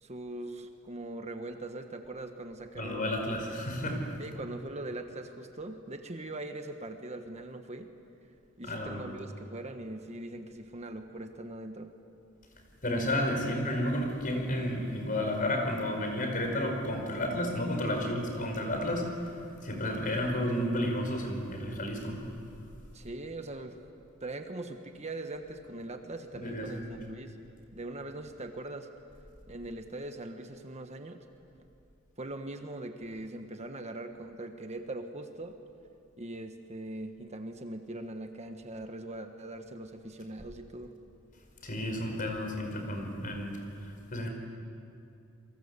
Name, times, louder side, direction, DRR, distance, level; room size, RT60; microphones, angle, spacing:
voice 1, 0.0-3.1 4.2-7.9 8.6-11.9 22.9-23.8 24.2-27.4 27.7-28.9 29.5-31.2 32.2-35.6 36.2-40.9, right 2 dB, 30° right, 6 dB, 1.4 m, -41 dB
voice 2, 2.8-4.0 8.6-9.1 12.8-19.3 19.6-22.2 26.3-27.0 41.6-44.3, left 1 dB, 40° left, 3 dB, 5.4 m, -32 dB
28.5 x 23.5 x 8.3 m, 2.8 s
head